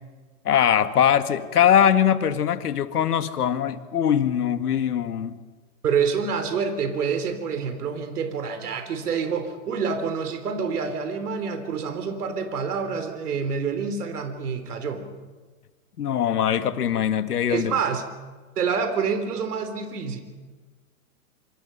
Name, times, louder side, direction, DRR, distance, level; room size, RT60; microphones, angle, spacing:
voice 1, 0.5-5.4 16.0-17.7, left 9 dB, 90° left, 10 dB, 2.0 m, -21 dB
voice 2, 5.8-15.1 17.5-18.1 18.6-20.2, right 6 dB, 85° right, 8 dB, 3.7 m, -27 dB
27.0 x 26.5 x 5.7 m, 1.4 s
hypercardioid pair, 150°, 45 cm